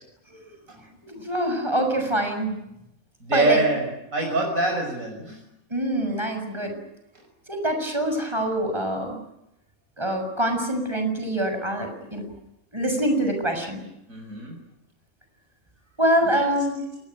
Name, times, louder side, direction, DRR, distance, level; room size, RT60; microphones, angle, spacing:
voice 1, 1.0-2.6 3.3-3.6 5.7-6.7 7.5-9.2 10.0-12.2 12.7-13.8 16.0-16.9, right 1 dB, 20° right, 5 dB, 7.0 m, -25 dB
voice 2, 3.2-3.9 4.1-5.4 14.1-14.5 16.2-16.4, right 2 dB, 70° right, 1 dB, 6.3 m, -24 dB
28.0 x 21.0 x 9.4 m, 0.85 s
omnidirectional pair, 1.5 m